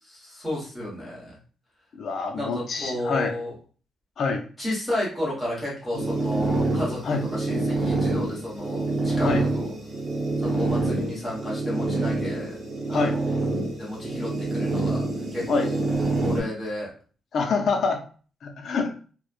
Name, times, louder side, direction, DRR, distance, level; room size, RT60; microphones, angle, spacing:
voice 1, 0.0-1.4 2.3-3.5 4.6-9.7 10.4-12.6 12.9-13.4 13.8-15.1 15.3-15.8 16.2-16.9, left 1 dB, 5° left, -6 dB, 1.0 m, -32 dB
voice 2, 2.0-3.3 4.2-4.4 7.0-7.2 9.2-9.4 12.9-13.2 15.5-15.7 17.3-18.0 18.4-18.9, left 4 dB, 45° left, 4 dB, 0.4 m, -25 dB
sound 1, 5.9-16.4, right 2 dB, 30° right, 0.8 m, -26 dB
2.9 x 2.0 x 2.3 m, 0.39 s
cardioid pair, 180°, 0 cm